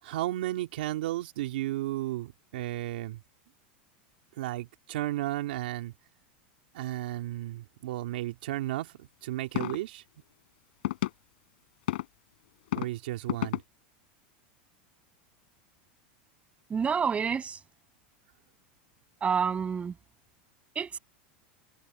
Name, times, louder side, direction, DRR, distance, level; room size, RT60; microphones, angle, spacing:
voice 1, 0.0-3.2 4.4-5.9 6.7-10.0 12.8-13.6, right 15 dB, 75° right, 2.4 m, -33 dB
sound 1, 9.6-9.8 10.8-11.1 11.9-12.0 12.7-12.9 13.3-13.6, left 16 dB, 75° left, 5.9 m, -29 dB
voice 2, 16.7-17.6 19.2-20.0 20.7-21.0, right 6 dB, 25° right, 7.5 m, -28 dB
hypercardioid pair, 105°, 5 cm